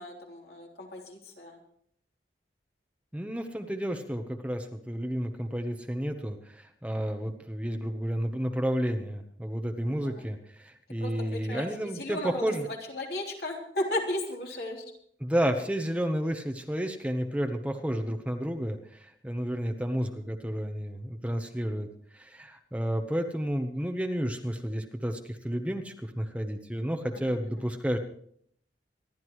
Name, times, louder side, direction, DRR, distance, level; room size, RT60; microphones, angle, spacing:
voice 1, 0.0-1.6 11.0-14.8, left 1 dB, 60° left, 0 dB, 3.6 m, -35 dB
voice 2, 3.1-12.7 15.2-21.9 22.1-28.0, equal, 10° right, 5 dB, 1.0 m, -31 dB
26.0 x 12.0 x 3.1 m, 0.64 s
head